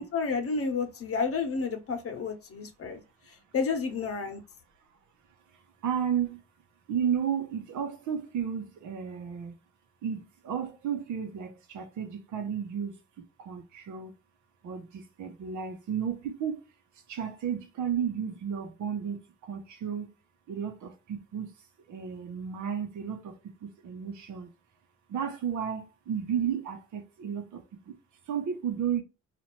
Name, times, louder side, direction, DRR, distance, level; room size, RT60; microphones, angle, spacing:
voice 1, 0.0-3.0 3.5-4.4, left 5 dB, 50° left, 1.0 m, -30 dB
voice 2, 5.8-6.4 6.9-9.5 10.0-12.9 13.4-14.1 14.6-16.6 17.1-19.2 19.5-20.1 20.5-21.5 21.9-23.3 23.6-24.5 25.1-28.0 28.3-29.0, right 8 dB, 75° right, 0.9 m, -33 dB
4.3 x 2.5 x 3.0 m
cardioid pair, 90°, 30 cm